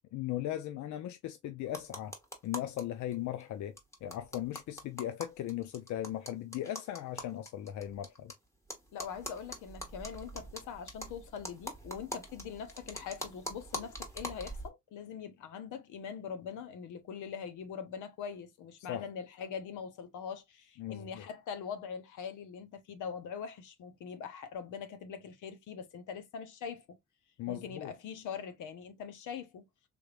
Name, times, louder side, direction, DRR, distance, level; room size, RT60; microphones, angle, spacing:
voice 1, 0.1-2.1 2.4-8.3 18.9-19.1 20.8-21.2 27.4-27.9, left 12 dB, 70° left, 0.5 m, -38 dB
sound 1, 1.7-2.8 3.1-3.2 3.4-3.5 3.8-8.3 8.7-14.7, equal, 10° left, 1.3 m, -43 dB
voice 2, 8.9-26.8 27.5-29.7, left 7 dB, 90° left, 0.9 m, -42 dB
3.5 x 3.1 x 2.4 m
cardioid pair, 90°, 30 cm